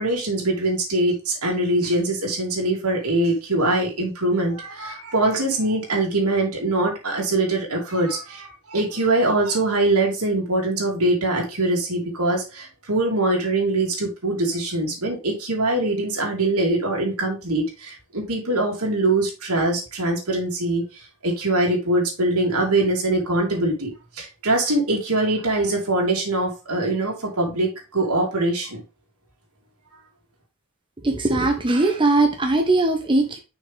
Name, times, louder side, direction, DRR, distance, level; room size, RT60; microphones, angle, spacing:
voice 1, 0.0-20.8 21.2-23.9 24.1-28.8, right 2 dB, 85° right, -1 dB, 3.2 m, -23 dB
voice 2, 31.0-33.4, right 2 dB, 25° right, 3 dB, 1.0 m, -20 dB
6.4 x 5.8 x 3.5 m, 0.29 s
head